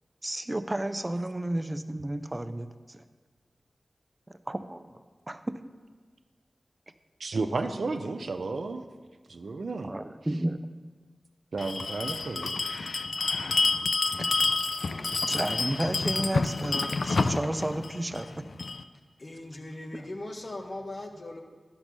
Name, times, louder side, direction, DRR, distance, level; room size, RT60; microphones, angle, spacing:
voice 1, 0.2-3.0 4.5-5.0 5.3-5.6 9.8-10.6 13.6-13.7 14.2-14.3 15.3-18.4 19.9-20.0, right 1 dB, 25° right, 0.5 m, -32 dB
voice 2, 7.2-8.8 9.3-9.9 11.5-12.5, right 3 dB, 80° right, 0.6 m, -32 dB
Bell, 11.6-18.8, left 3 dB, 75° left, 0.4 m, -29 dB
voice 3, 19.2-21.4, left 2 dB, 55° left, 1.1 m, -39 dB
10.5 x 5.4 x 6.1 m
cardioid pair, 45°, 0 cm